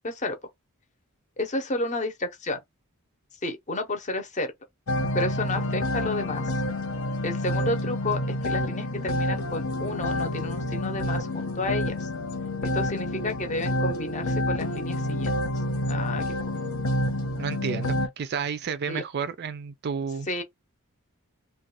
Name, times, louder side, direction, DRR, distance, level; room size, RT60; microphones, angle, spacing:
voice 1, 0.0-0.4 1.4-2.6 3.4-4.5 5.1-6.5 7.2-12.1 12.6-15.3 15.9-16.6 18.9-19.0 20.3-20.4, left 2 dB, 35° left, 0.7 m, -31 dB
sound 1, 4.9-18.1, left 1 dB, 70° left, 0.9 m, -28 dB
voice 2, 17.4-20.3, right 6 dB, 45° right, 0.3 m, -31 dB
2.5 x 2.2 x 3.9 m
head